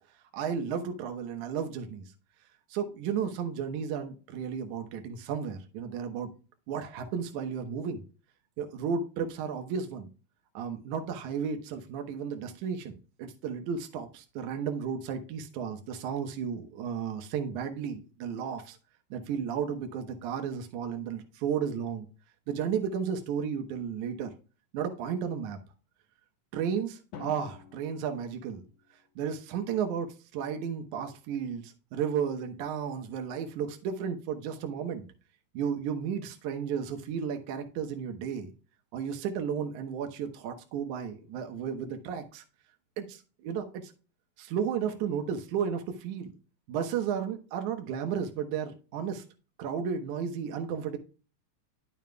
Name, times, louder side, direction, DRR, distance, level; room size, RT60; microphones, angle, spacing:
voice 1, 0.3-2.1 2.7-6.3 6.7-8.0 8.6-10.1 10.5-18.8 19.1-22.1 22.5-24.3 24.7-25.6 26.5-28.6 29.2-30.1 30.3-35.0 35.5-38.5 38.9-42.4 43.0-43.9 44.4-46.3 46.7-49.2 49.6-51.0, right 7 dB, 75° right, 5 dB, 2.4 m, -33 dB
Drum, 27.1-29.2, left 7 dB, 75° left, 2.6 m, -49 dB
11.0 x 7.2 x 2.2 m, 0.34 s
omnidirectional pair, 3.5 m